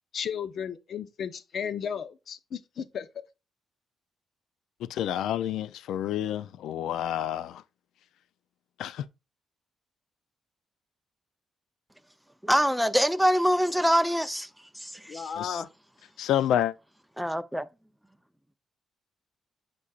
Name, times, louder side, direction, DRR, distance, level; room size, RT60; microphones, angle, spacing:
voice 1, 0.1-3.1 15.1-15.7, left 7 dB, 60° left, 0.8 m, -34 dB
voice 2, 4.8-7.6 8.8-9.1 15.4-15.6 16.2-16.7, left 11 dB, 85° left, 0.4 m, -29 dB
voice 3, 12.4-14.5 14.7-15.3 17.2-17.7, equal, ahead, 0.6 m, -24 dB
8.4 x 5.4 x 2.4 m
cardioid pair, 100°, 0 cm